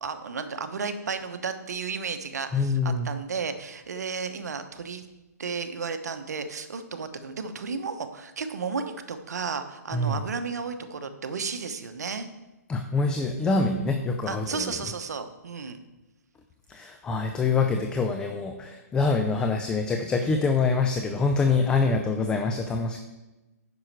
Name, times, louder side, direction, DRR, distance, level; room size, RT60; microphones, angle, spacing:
voice 1, 0.0-5.1 5.4-12.3 14.3-15.8, right 5 dB, 70° right, 9 dB, 1.0 m, -33 dB
voice 2, 2.5-3.1 9.9-10.2 12.7-14.7 16.7-23.0, left 4 dB, 10° left, 5 dB, 0.4 m, -25 dB
9.6 x 6.2 x 4.6 m, 1.1 s
hypercardioid pair, 150°, 9 cm